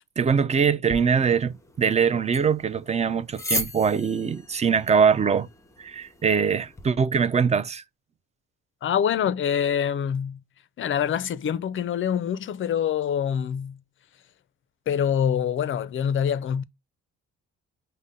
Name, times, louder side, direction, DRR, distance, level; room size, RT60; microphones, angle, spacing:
voice 1, 0.2-5.5 5.8-7.8, right 6 dB, 25° right, 0.4 m, -22 dB
sound 1, 0.9-6.9, left 1 dB, 10° left, 0.7 m, -37 dB
voice 2, 8.8-10.4 10.8-13.8 14.9-16.6, left 8 dB, 45° left, 0.4 m, -25 dB
5.3 x 2.1 x 3.6 m
cardioid pair, 90°, 30 cm